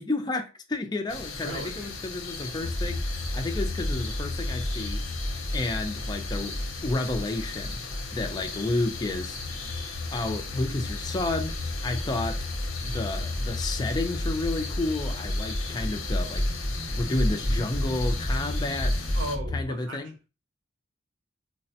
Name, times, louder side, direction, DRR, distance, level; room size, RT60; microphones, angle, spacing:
voice 1, 0.0-5.0 5.5-9.7 10.1-12.5 12.8-16.5 16.9-19.0 19.5-20.1, left 2 dB, 20° left, 0.3 m, -31 dB
sound 1, 1.1-19.4, left 4 dB, 90° left, 0.6 m, -38 dB
voice 2, 1.4-2.0 2.6-2.8 19.1-20.1, right 1 dB, 75° right, 0.8 m, -37 dB
sound 2, 2.6-19.6, left 1 dB, 10° right, 0.8 m, -31 dB
3.1 x 2.1 x 2.7 m
head